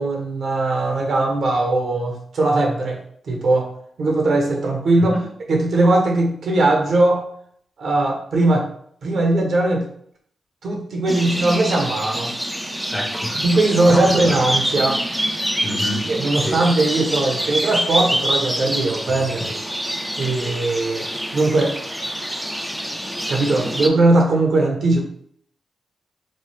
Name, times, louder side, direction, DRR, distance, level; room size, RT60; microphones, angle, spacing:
voice 1, 0.0-3.0 3.3-3.7 4.0-5.2 5.5-7.2 7.8-8.7 9.0-9.9 10.6-12.3 13.4-15.0 16.1-19.6 20.2-21.1 21.3-21.8 23.3-25.0, right 2 dB, 70° right, 1 dB, 0.7 m, -19 dB
voice 2, 5.0-5.3 12.9-13.4 13.9-14.5 15.6-16.1 16.4-16.6 19.2-19.3, left 1 dB, 20° left, 1 dB, 0.9 m, -28 dB
sound 1, 11.1-23.9, equal, 5° right, 0.4 m, -26 dB
3.1 x 2.0 x 3.1 m, 0.65 s
supercardioid pair, 45°, 0 cm